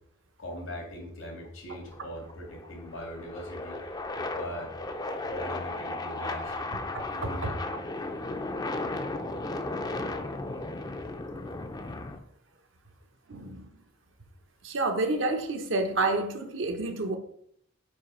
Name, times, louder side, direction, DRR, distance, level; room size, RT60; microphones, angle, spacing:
voice 1, 0.4-3.8 4.1-4.7 5.2-6.8 7.1-7.6, equal, 85° left, 1 dB, 2.1 m, -40 dB
sound 1, 1.8-12.2, left 2 dB, 20° left, 0.5 m, -35 dB
voice 2, 13.3-13.7 14.6-17.2, right 2 dB, 75° right, 5 dB, 1.0 m, -29 dB
5.3 x 4.6 x 5.0 m, 0.69 s
head